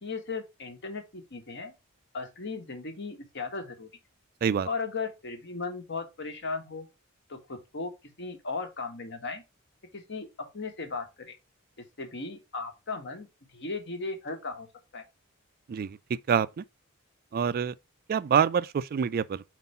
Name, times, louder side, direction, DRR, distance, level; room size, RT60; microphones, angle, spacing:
voice 1, 0.0-1.7 2.1-3.9 4.6-6.9 7.3-7.9 8.2-9.4 9.9-11.4 11.8-14.7 14.9-15.0, left 4 dB, 55° left, 1.3 m, -36 dB
voice 2, 15.7-16.6 17.3-17.7 18.1-19.4, right 7 dB, 45° right, 0.3 m, -26 dB
4.6 x 4.1 x 5.4 m
head